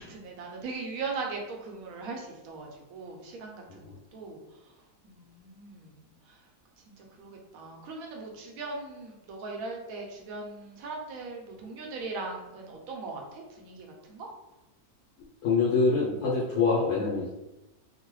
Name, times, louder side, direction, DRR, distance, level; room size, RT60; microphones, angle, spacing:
voice 1, 0.0-6.5 6.9-14.3, right 3 dB, 75° right, 1 dB, 1.0 m, -40 dB
voice 2, 15.4-17.4, left 4 dB, 80° left, -7 dB, 1.3 m, -25 dB
3.0 x 2.1 x 3.0 m, 0.98 s
omnidirectional pair, 1.6 m